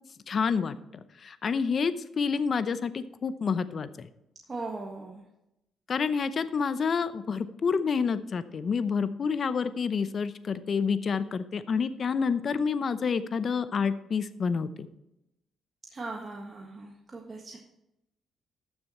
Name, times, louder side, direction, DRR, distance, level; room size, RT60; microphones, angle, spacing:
voice 1, 0.3-0.7 1.2-4.1 5.9-14.9, left 5 dB, 45° left, 13 dB, 0.7 m, -28 dB
voice 2, 4.5-5.2 15.9-17.6, right 3 dB, 30° right, 0 dB, 1.6 m, -39 dB
12.5 x 7.0 x 4.3 m, 0.88 s
cardioid pair, 90°, 0 cm